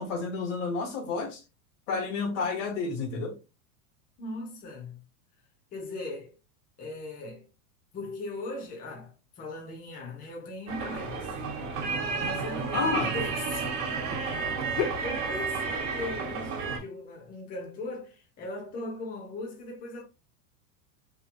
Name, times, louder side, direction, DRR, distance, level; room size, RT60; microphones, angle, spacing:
voice 1, 0.0-1.4 1.9-3.4 12.7-13.1 14.8-14.9, left 4 dB, 55° left, 0.7 m, -30 dB
voice 2, 4.2-5.1 5.7-6.3 6.8-7.5 7.9-11.6 12.1-20.0, left 2 dB, 20° left, 0.7 m, -39 dB
sound 1, 10.7-16.8, right 4 dB, 60° right, 1.0 m, -31 dB
3.0 x 2.5 x 2.5 m
supercardioid pair, 160°, 45 cm